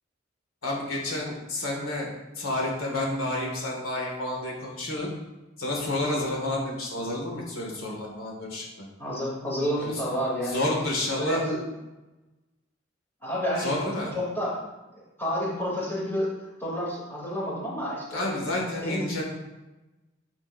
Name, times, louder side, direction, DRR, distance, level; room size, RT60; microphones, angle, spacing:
voice 1, 0.6-2.1 2.4-5.1 5.6-8.9 9.8-10.0 10.4-11.4 13.6-14.1 18.1-19.2, left 1 dB, 85° left, -1 dB, 2.2 m, -30 dB
voice 2, 9.0-10.6 11.1-11.6 13.2-13.7 14.1-14.6 15.2-16.3 16.6-18.3 18.8-19.1, equal, 10° left, -6 dB, 3.1 m, -29 dB
10.5 x 7.5 x 2.7 m, 1.0 s
head